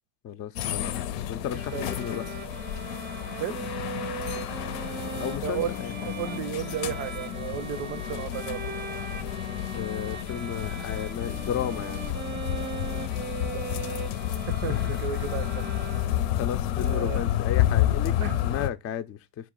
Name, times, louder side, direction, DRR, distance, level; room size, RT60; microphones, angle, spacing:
voice 1, 0.2-1.0 1.3-2.2 5.2-6.1 9.7-12.1 14.7-15.0 16.4-19.4, left 9 dB, 30° left, 0.4 m, -34 dB
sound 1, 0.6-18.7, left 12 dB, 75° left, 0.6 m, -30 dB
sound 2, 1.5-16.4, right 6 dB, 20° right, 0.5 m, -40 dB
voice 2, 1.5-1.8 3.4-3.7 5.4-5.7 6.0-8.9 13.4-14.0 14.6-16.1 16.8-17.2 18.2-18.4, right 9 dB, 90° right, 0.7 m, -34 dB
3.9 x 2.4 x 3.6 m
supercardioid pair, 75°, 49 cm